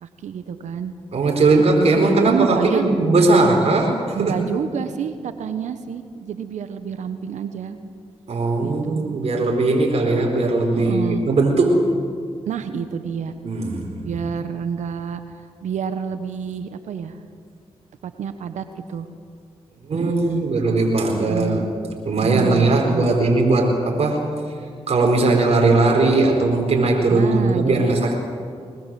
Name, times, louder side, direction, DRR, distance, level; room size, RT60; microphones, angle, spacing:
voice 1, 0.0-0.9 1.6-2.9 4.1-7.8 8.6-9.2 10.7-11.3 12.5-13.3 14.0-17.2 18.0-19.1 19.9-20.5 21.2-21.7 22.2-23.2 27.1-27.9, right 7 dB, 80° right, 9 dB, 1.2 m, -28 dB
voice 2, 1.1-4.4 8.3-11.9 13.4-14.0 19.9-21.6 22.1-24.3 24.9-28.1, right 2 dB, 60° right, 1 dB, 4.4 m, -19 dB
22.5 x 21.0 x 7.7 m, 2.2 s
supercardioid pair, 40°, 12 cm